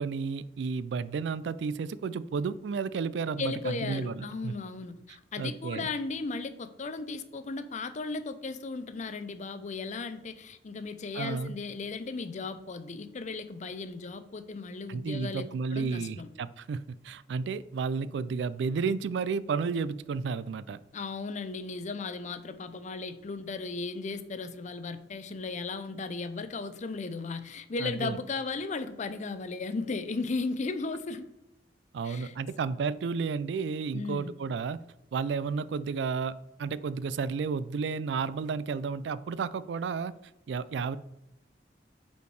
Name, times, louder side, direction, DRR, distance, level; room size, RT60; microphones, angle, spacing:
voice 1, 0.0-4.5 5.4-5.9 11.1-11.5 14.9-20.8 27.8-28.2 31.9-34.8 35.1-36.3 36.6-40.1 40.5-41.0, right 5 dB, 75° right, 17 dB, 0.3 m, -32 dB
voice 2, 3.4-16.3 20.9-31.3 32.0-32.3 33.9-34.3, left 4 dB, 45° left, 11 dB, 0.5 m, -36 dB
5.5 x 4.4 x 4.7 m, 0.87 s
head